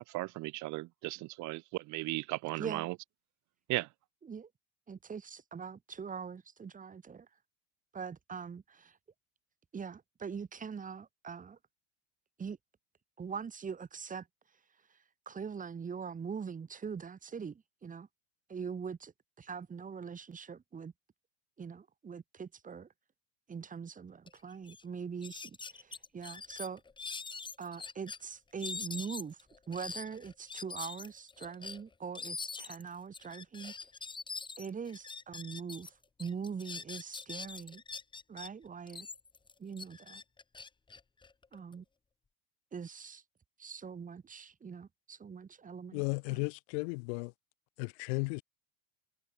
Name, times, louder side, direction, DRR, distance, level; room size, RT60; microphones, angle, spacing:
voice 1, 0.0-3.0 3.7-3.9, right 21 dB, 55° right, 3.5 m, -36 dB
voice 2, 4.9-7.2 7.9-9.0 9.7-11.6 12.4-12.6 13.2-14.3 15.3-18.1 18.5-19.1 19.4-20.9 21.6-22.9 23.5-26.8 27.6-29.4 29.7-33.7 34.6-35.9 36.2-37.8 38.3-39.1 39.6-40.2 41.5-41.8 42.7-43.2 43.6-46.0 46.3-46.4, right 6 dB, 20° right, 7.5 m, -42 dB
sound 1, 24.3-24.4 24.6-24.8 25.2-28.2 28.6-35.9 36.2-38.5 38.9-41.7, left 4 dB, 15° left, 1.5 m, -44 dB
voice 3, 45.9-47.3 47.8-48.4, left 33 dB, 70° left, 5.1 m, -34 dB
supercardioid pair, 120°, 35 cm